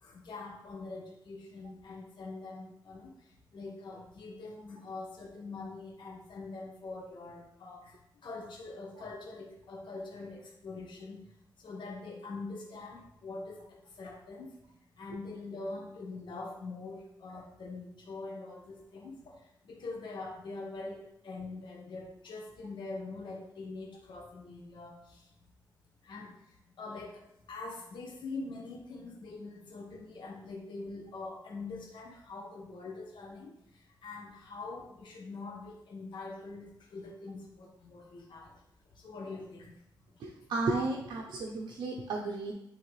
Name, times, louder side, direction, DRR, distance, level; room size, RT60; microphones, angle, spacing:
voice 1, 0.0-3.1 3.5-8.0 8.2-11.2 11.6-14.5 15.0-19.4 19.6-25.2 26.0-26.3 26.8-27.2 27.5-33.5 34.0-38.6 39.0-39.7, left 3 dB, 75° left, -1 dB, 1.5 m, -43 dB
voice 2, 40.2-42.5, right 3 dB, 90° right, -1 dB, 0.7 m, -33 dB
10.0 x 3.4 x 3.3 m, 0.80 s
cardioid pair, 75°, 8 cm